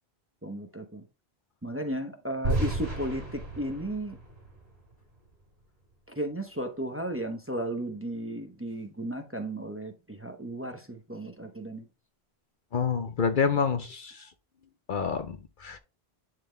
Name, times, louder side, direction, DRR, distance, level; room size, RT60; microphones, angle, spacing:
voice 1, 0.4-1.0 1.6-4.2 6.1-11.8, right 1 dB, 15° right, 0.8 m, -34 dB
sound 1, 2.4-5.4, right 2 dB, 80° right, 3.7 m, -33 dB
voice 2, 12.7-14.3 14.9-15.8, left 6 dB, 55° left, 0.8 m, -28 dB
11.0 x 4.0 x 3.3 m
omnidirectional pair, 1.1 m